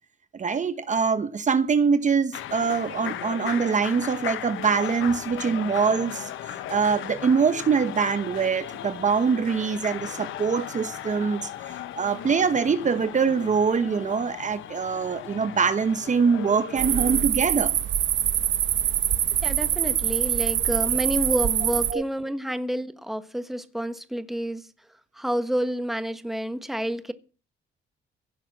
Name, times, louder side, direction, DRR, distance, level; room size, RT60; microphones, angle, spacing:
voice 1, 0.3-6.3 6.7-11.5 11.9-17.7 21.9-22.0, right 5 dB, 40° right, 1.0 m, -24 dB
sound 1, 2.3-17.2, left 11 dB, 80° left, 1.1 m, -37 dB
sound 2, 16.8-21.9, right 10 dB, 70° right, 1.2 m, -24 dB
voice 2, 19.4-24.6 25.2-27.1, equal, ahead, 1.3 m, -29 dB
15.5 x 6.7 x 7.5 m
cardioid pair, 90°, 20 cm